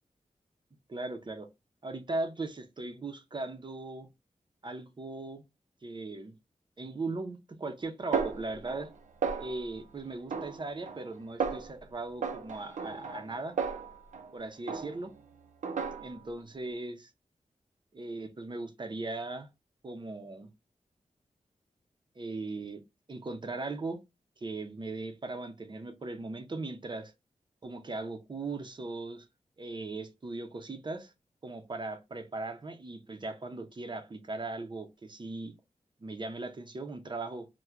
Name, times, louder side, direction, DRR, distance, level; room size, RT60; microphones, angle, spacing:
voice 1, 0.9-1.5 1.8-4.1 4.6-5.4 5.8-6.4 6.8-8.9 9.4-13.5 14.3-15.1 16.0-17.1 17.9-19.5 19.8-20.5 22.2-22.8 23.1-24.0 24.4-27.1 27.6-29.3 29.6-31.1 31.4-35.5 36.0-37.5, right 2 dB, 40° right, 0.6 m, -38 dB
Snare drum, 8.1-8.9 9.2-9.8 10.3-11.1 11.4-11.8 12.2-14.3 14.7-15.2 15.6-16.3, right 5 dB, 90° right, 0.5 m, -35 dB
4.3 x 2.1 x 2.4 m
wide cardioid pair, 90°, 13 cm